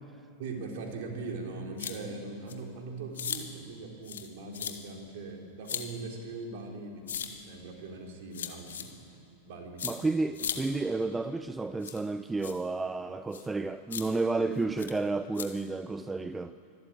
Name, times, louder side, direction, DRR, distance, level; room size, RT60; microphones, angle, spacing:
voice 1, 0.4-9.0 9.4-10.0, right 3 dB, 50° right, 3.8 m, -41 dB
sound 1, 1.8-1.9 2.5-2.6 3.1-3.4 4.0-4.3 4.5-4.7 5.6-5.8 7.1-7.3 8.3-8.8 9.8-9.9 10.3-10.6 11.8-12.0 12.4-12.5 13.3-13.5 13.9-14.0 14.8-14.9 15.3-15.4, left 9 dB, 65° left, 1.7 m, -36 dB
voice 2, 9.8-16.5, right 3 dB, 10° right, 0.5 m, -31 dB
24.5 x 13.5 x 8.8 m
figure-of-eight pair, 90°, 0 cm